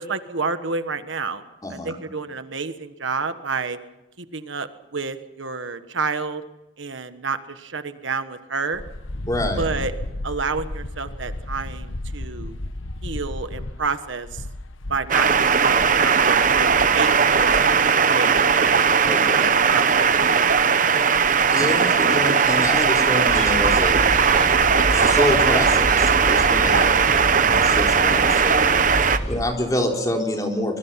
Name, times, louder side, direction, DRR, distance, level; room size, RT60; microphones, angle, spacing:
voice 1, 0.0-1.4 1.7-3.8 4.2-6.4 6.8-8.8 9.6-9.9 10.2-12.6 13.0-14.4 14.9-18.8 19.2-20.5 26.6-26.9, right 4 dB, 70° right, 9 dB, 1.4 m, -29 dB
voice 2, 1.6-1.9 9.3-9.6 19.1-19.5 21.5-24.1 24.9-26.8 27.4-28.7 29.3-30.8, left 1 dB, 20° left, 1 dB, 3.8 m, -26 dB
sound 1, 8.7-24.4, left 1 dB, 85° left, 1.2 m, -35 dB
sound 2, 15.1-29.2, right 6 dB, 40° right, 0.9 m, -18 dB
sound 3, 23.3-29.4, left 1 dB, 35° left, 6.2 m, -29 dB
25.0 x 22.0 x 5.8 m, 0.98 s
head